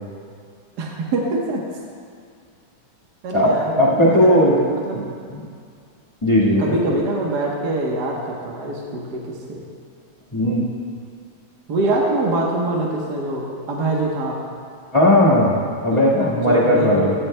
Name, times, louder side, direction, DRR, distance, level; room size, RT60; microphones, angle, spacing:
voice 1, 0.8-1.6 3.2-5.0 6.6-9.6 11.7-14.4 15.9-17.1, right 2 dB, 65° right, -2 dB, 1.0 m, -24 dB
voice 2, 3.7-4.6 4.9-5.0 5.3-5.4 6.2-6.8 10.3-10.6 14.9-17.1, left 1 dB, 20° left, -7 dB, 0.8 m, -17 dB
16.5 x 13.5 x 2.2 m, 2.2 s
omnidirectional pair, 3.4 m